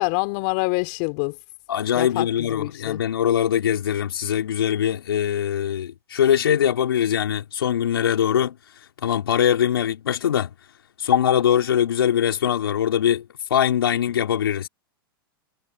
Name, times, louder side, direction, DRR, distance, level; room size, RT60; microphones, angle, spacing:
voice 1, 0.0-1.4 2.0-3.0, left 33 dB, 50° left, 4.1 m, -26 dB
voice 2, 1.7-8.5 9.0-10.5 11.0-13.2 13.5-14.7, left 9 dB, 80° left, 3.8 m, -22 dB
hypercardioid pair, 105°, 12 cm